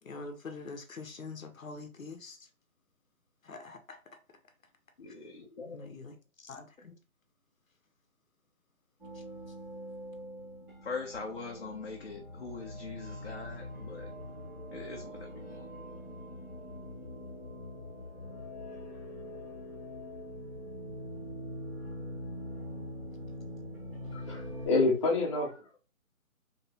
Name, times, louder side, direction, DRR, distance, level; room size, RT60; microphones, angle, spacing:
voice 1, 0.0-2.5 3.4-4.2 5.1-5.2 5.7-7.0 9.1-9.5, left 3 dB, 65° left, 1.0 m, -45 dB
voice 2, 5.0-5.9 10.8-14.1 14.7-15.6, left 4 dB, 45° left, 0.7 m, -42 dB
sound 1, 9.0-24.7, left 1 dB, 5° right, 1.9 m, -43 dB
voice 3, 24.1-25.5, left 3 dB, 20° left, 1.0 m, -28 dB
4.4 x 3.1 x 2.9 m
figure-of-eight pair, 160°, 43 cm